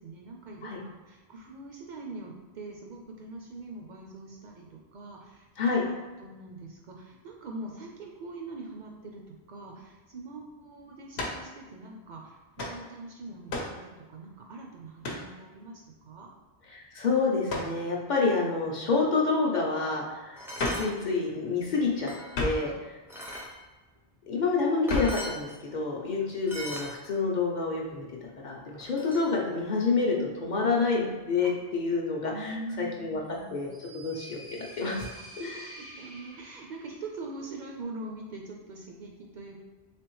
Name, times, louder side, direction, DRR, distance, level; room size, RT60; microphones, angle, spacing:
voice 1, 0.0-5.5 5.8-5.9 6.2-16.3 22.6-22.7 26.0-26.2 31.4-31.5 32.3-33.6 35.5-39.7, right 2 dB, 60° right, 0 dB, 0.6 m, -43 dB
sound 1, 11.1-11.5 12.6-12.8 13.5-13.8 15.0-15.3 17.5-17.8 20.6-20.9 22.3-22.7 24.9-25.2, left 2 dB, 90° left, 0.9 m, -32 dB
voice 2, 16.7-20.4 20.7-22.1 22.4-22.7 24.3-33.2 33.5-35.1 35.4-35.8, left 4 dB, 55° left, -2 dB, 0.6 m, -28 dB
sound 2, 20.4-20.9 21.6-22.4 23.1-23.5 24.5-24.6 24.9-25.4 26.5-26.9 28.8-29.3, equal, 5° right, 0.3 m, -39 dB
sound 3, 33.3-37.1, right 1 dB, 90° right, 1.3 m, -48 dB
3.4 x 3.3 x 3.0 m, 1.2 s
omnidirectional pair, 1.0 m